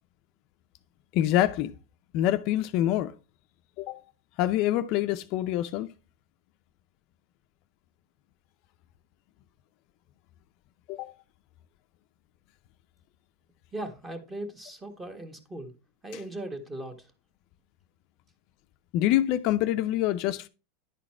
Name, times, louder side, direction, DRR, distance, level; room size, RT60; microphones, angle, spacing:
voice 1, 1.1-1.7 2.1-3.1 3.8-4.0 4.4-5.9 10.9-11.1 18.9-20.5, left 13 dB, 50° left, 0.5 m, -25 dB
voice 2, 13.7-15.7 16.0-17.1, right 1 dB, 15° right, 1.5 m, -38 dB
10.5 x 4.1 x 4.3 m
supercardioid pair, 140°, 0 cm